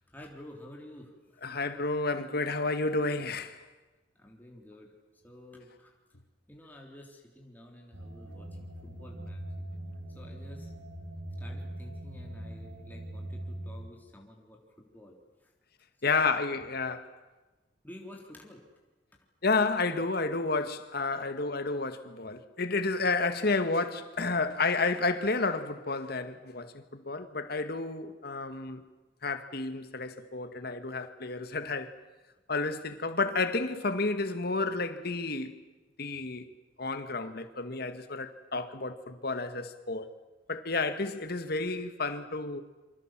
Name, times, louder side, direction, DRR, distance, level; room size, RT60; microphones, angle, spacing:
voice 1, 0.1-1.4 4.1-4.9 5.2-6.0 6.5-9.4 10.1-10.7 11.4-15.5 16.0-16.4 17.8-18.6, left 1 dB, 10° left, 3.5 m, -51 dB
voice 2, 1.4-3.6 16.0-17.1 19.4-28.8 29.2-32.0 32.5-35.6 36.0-36.5 36.8-40.1 40.5-42.6, left 3 dB, 60° left, 1.9 m, -31 dB
sound 1, 7.9-13.9, right 1 dB, 85° right, 6.0 m, -41 dB
28.0 x 25.0 x 7.6 m
head